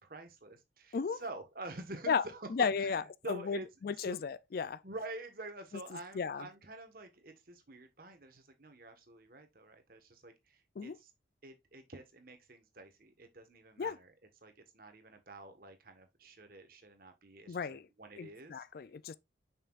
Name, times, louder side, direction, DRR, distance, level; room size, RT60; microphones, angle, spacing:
voice 1, 0.0-2.5 2.8-4.2 4.8-11.1 11.4-14.1 14.4-18.9, right 2 dB, 50° right, 1.4 m, -48 dB
voice 2, 2.5-4.8 6.2-6.5 10.8-11.0 13.8-14.0 17.5-17.9 18.2-19.1, left 6 dB, 50° left, 0.3 m, -34 dB
6.7 x 5.7 x 2.4 m
head